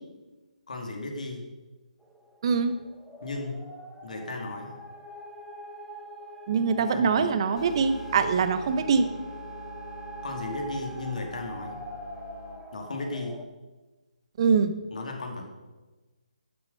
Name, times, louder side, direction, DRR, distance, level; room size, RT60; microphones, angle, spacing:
voice 1, 0.7-1.4 3.2-3.6 4.0-4.7 6.8-7.3 10.2-11.8 12.7-13.4 14.9-15.5, left 2 dB, 65° left, 2 dB, 2.4 m, -35 dB
sound 1, 2.0-13.5, right 2 dB, ahead, 0.8 m, -44 dB
voice 2, 2.4-2.8 6.5-9.1 14.4-14.7, right 5 dB, 40° right, 10 dB, 0.8 m, -23 dB
sound 2, 7.6-12.6, left 3 dB, 45° left, 1.7 m, -44 dB
12.0 x 6.8 x 5.6 m, 1.2 s
figure-of-eight pair, 150°, 4 cm